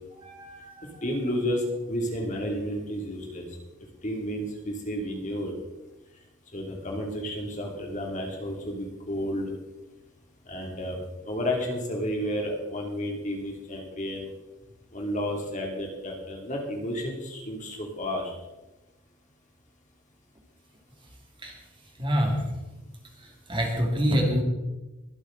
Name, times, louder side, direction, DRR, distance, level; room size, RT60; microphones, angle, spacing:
voice 1, 0.2-1.0 21.4-21.5 22.0-22.4 23.5-24.4, equal, 25° right, 0 dB, 2.2 m, -26 dB
voice 2, 1.0-3.5 4.0-5.5 6.5-9.5 10.5-11.0 11.2-14.3 14.9-18.3, equal, 35° left, 0 dB, 2.6 m, -31 dB
22.5 x 8.5 x 3.9 m, 1.1 s
head